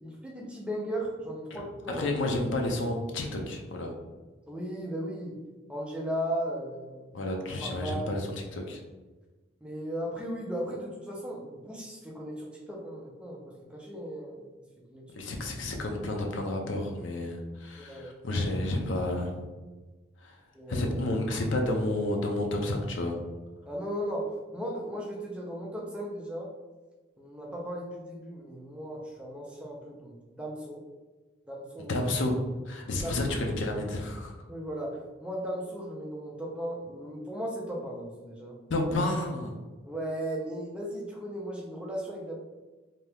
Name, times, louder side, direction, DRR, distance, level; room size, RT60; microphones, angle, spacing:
voice 1, 0.0-2.2 4.5-5.4 5.7-7.2 7.6-8.2 9.6-14.5 14.9-15.0 17.8-18.1 20.5-20.9 23.7-26.5 27.2-30.8 31.5-32.0 33.0-33.4 34.5-38.6 39.8-42.3, right 1 dB, 5° right, -3 dB, 0.4 m, -36 dB
voice 2, 1.5-3.9 7.1-8.8 15.2-19.4 20.2-20.4 20.7-23.2 31.9-32.4 32.7-34.3 38.7-39.5, left 1 dB, 80° left, 2 dB, 0.5 m, -30 dB
2.7 x 2.3 x 3.3 m, 1.3 s
head